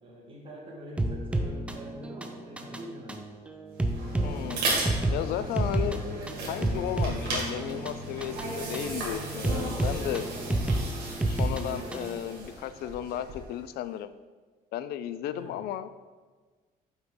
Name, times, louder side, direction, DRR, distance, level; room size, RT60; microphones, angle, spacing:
voice 1, 0.0-3.3 15.3-15.6, equal, 30° right, -3 dB, 1.8 m, -44 dB
sound 1, 1.0-12.2, right 1 dB, 5° right, 0.5 m, -31 dB
moving self service plate, 3.7-13.6, right 2 dB, 70° right, 2.1 m, -35 dB
voice 2, 4.2-4.6 5.1-6.0 6.5-10.3 11.3-14.1 14.7-15.9, left 11 dB, 70° left, 14 dB, 0.4 m, -34 dB
5.9 x 5.4 x 3.8 m, 1.4 s
cardioid pair, 110°, 17 cm